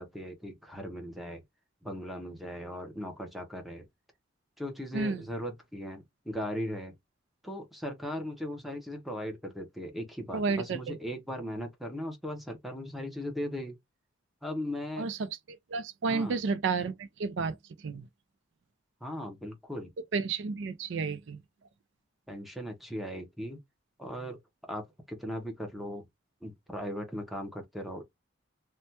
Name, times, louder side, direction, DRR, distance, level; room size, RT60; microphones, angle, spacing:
voice 1, 0.0-1.4 1.8-3.9 4.6-6.9 7.4-13.8 14.4-15.1 16.1-16.4 19.0-19.9 22.3-23.6 24.0-24.4 24.7-26.1 26.4-28.0, equal, ahead, 0.7 m, -38 dB
voice 2, 10.3-11.0 15.0-15.2 15.7-17.6 17.8-18.1 20.1-21.4, right 4 dB, 65° right, 0.4 m, -31 dB
3.2 x 2.2 x 2.7 m
head